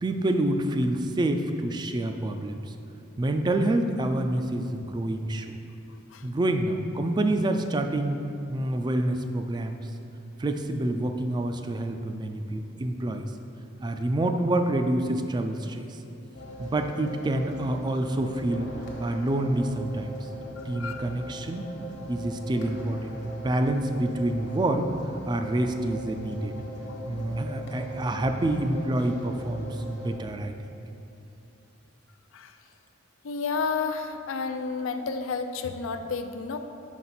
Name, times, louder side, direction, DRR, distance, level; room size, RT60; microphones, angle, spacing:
voice 1, 0.0-2.7 3.2-5.6 6.2-8.2 8.5-9.8 10.4-13.3 13.8-15.9 16.6-18.7 19.0-20.2 20.7-21.7 22.1-24.9 25.3-26.5 27.1-30.5, right 1 dB, 20° right, 6 dB, 0.3 m, -27 dB
sound 1, 16.3-30.1, right 1 dB, 60° left, 1.1 m, -40 dB
voice 2, 33.2-36.6, left 5 dB, 80° left, 8 dB, 0.4 m, -31 dB
5.5 x 4.1 x 5.9 m, 2.9 s
head